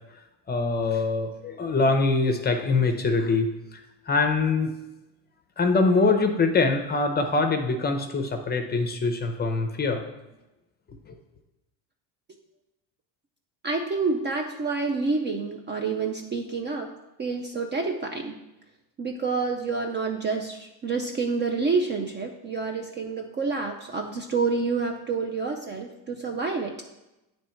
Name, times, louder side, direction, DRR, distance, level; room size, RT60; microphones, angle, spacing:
voice 1, 0.5-4.7 5.6-10.0, left 3 dB, 20° left, 6 dB, 0.6 m, -24 dB
voice 2, 13.6-16.9 17.2-18.4 19.0-26.8, right 4 dB, 25° right, 3 dB, 0.4 m, -28 dB
8.5 x 3.2 x 4.4 m, 0.96 s
supercardioid pair, 115°, 45 cm